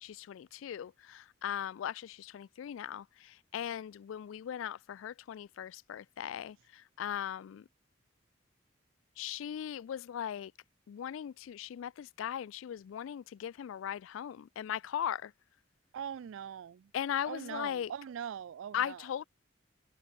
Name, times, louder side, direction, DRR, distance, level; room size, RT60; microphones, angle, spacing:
voice 1, 0.0-7.6 9.2-10.5 10.9-15.3 16.9-17.9 18.7-19.2, left 9 dB, 80° left, 0.3 m, -38 dB
voice 2, 15.9-16.9 17.2-19.1, right 8 dB, 75° right, 0.3 m, -42 dB
head